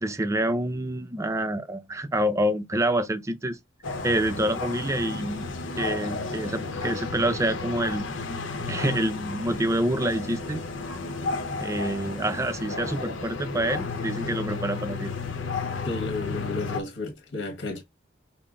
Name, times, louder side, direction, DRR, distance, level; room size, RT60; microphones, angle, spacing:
voice 1, 0.0-3.6 4.0-5.5 5.8-8.1 8.7-10.6 11.6-15.1, right 1 dB, 15° right, 0.4 m, -27 dB
sound 1, 3.8-16.8, left 3 dB, 90° left, 0.8 m, -33 dB
voice 2, 15.8-17.8, left 3 dB, 70° left, 1.4 m, -32 dB
5.7 x 2.1 x 3.7 m
head